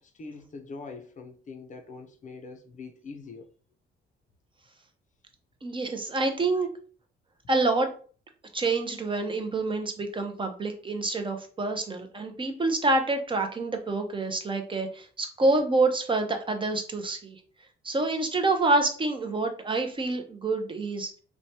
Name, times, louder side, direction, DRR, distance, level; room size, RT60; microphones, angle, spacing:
voice 1, 0.0-3.5 6.1-6.7, left 4 dB, 40° left, 0.5 m, -44 dB
voice 2, 5.6-6.7 7.5-7.9 8.5-17.4 17.8-21.1, right 2 dB, 25° right, 0.5 m, -27 dB
3.0 x 2.1 x 2.7 m
cardioid pair, 90°, 20 cm